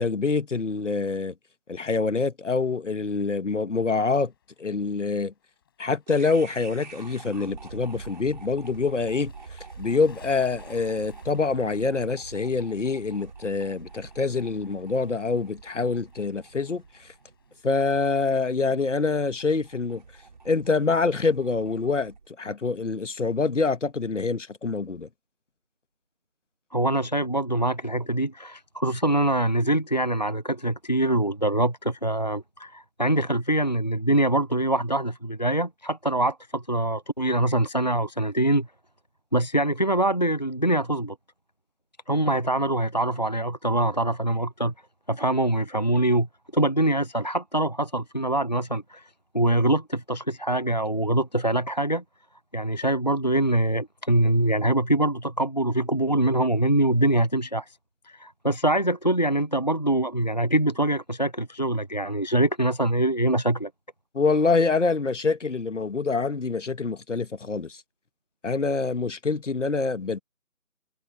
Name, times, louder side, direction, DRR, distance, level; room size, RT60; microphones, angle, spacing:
voice 1, 0.0-1.3 1.7-4.3 4.6-5.3 5.8-17.1 17.6-20.0 20.4-25.1 64.1-67.8 68.4-70.2, left 4 dB, 60° left, 1.6 m, -26 dB
sound 1, 3.8-22.1, left 9 dB, 15° left, 5.3 m, -63 dB
sound 2, 6.1-22.3, right 4 dB, 35° right, 4.6 m, -45 dB
voice 2, 26.7-38.7 39.3-41.2 42.1-44.7 45.1-46.3 46.5-49.1 49.3-52.0 52.5-57.8 58.0-63.7, right 1 dB, 30° left, 0.6 m, -24 dB
figure-of-eight pair, 170°, 41 cm